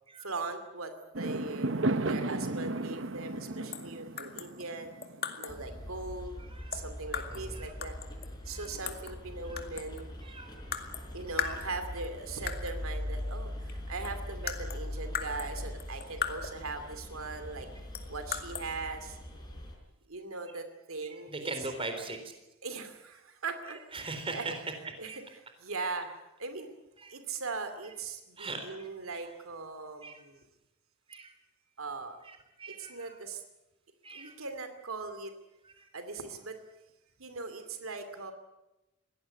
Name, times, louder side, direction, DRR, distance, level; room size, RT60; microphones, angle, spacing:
voice 1, 0.2-4.9 5.4-6.3 6.7-8.0 8.4-10.1 11.1-17.7 18.1-19.2 20.1-21.5 22.6-24.4 25.0-25.1 25.6-26.1 26.4-26.7 27.1-30.4 31.8-32.2 32.8-33.4 34.1-35.3 35.9-36.6 37.2-38.3, right 3 dB, 85° right, 8 dB, 2.6 m, -40 dB
Fireworks, 1.1-5.6, right 2 dB, 65° right, 1.1 m, -34 dB
sound 1, 3.7-3.9 4.2-5.7 6.7-7.5 7.8-9.2 9.6-10.1 10.7-11.1 11.4-12.1 12.5-12.8 13.7-13.8 14.0-16.7 17.9-18.7, left 8 dB, 50° left, 2.2 m, -38 dB
sound 2, 5.5-19.8, left 1 dB, 20° left, 4.8 m, -41 dB
voice 2, 6.5-6.8 7.3-7.7 8.4-8.7 9.4-9.7 10.2-10.6 11.3-11.6 21.1-22.3 23.7-24.6 25.0-25.2 27.0-27.1 28.4-28.9 30.0-30.2 31.1-31.3 32.2-33.2 34.0-34.4 35.6-35.9, right 3 dB, 25° right, 6 dB, 4.0 m, -41 dB
22.0 x 17.0 x 9.7 m, 0.98 s
head